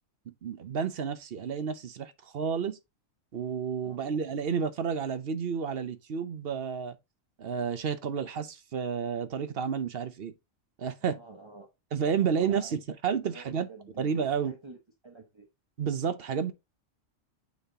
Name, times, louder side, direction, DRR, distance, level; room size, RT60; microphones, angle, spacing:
voice 1, 0.3-2.8 3.3-7.0 7.4-10.3 10.8-11.2 11.9-13.7 14.0-14.5 15.8-16.5, right 6 dB, 55° right, 0.9 m, -31 dB
voice 2, 3.8-4.2 11.0-11.7 12.2-12.8 13.2-14.1 14.4-14.8 15.0-15.5, right 3 dB, 25° right, 1.1 m, -49 dB
8.4 x 4.2 x 2.8 m
omnidirectional pair, 1.3 m